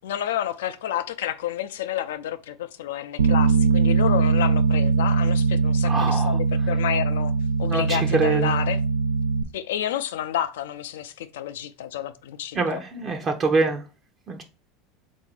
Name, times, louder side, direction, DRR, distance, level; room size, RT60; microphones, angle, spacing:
voice 1, 0.0-7.3 7.6-8.8 9.5-12.8, left 11 dB, 75° left, 0.4 m, -30 dB
Bass guitar, 3.2-9.4, right 5 dB, 85° right, 0.3 m, -21 dB
voice 2, 5.8-6.4 7.7-8.6 12.5-13.8 14.3-14.4, right 3 dB, 35° right, 0.7 m, -24 dB
3.8 x 2.6 x 4.2 m
hypercardioid pair, 80°, 0 cm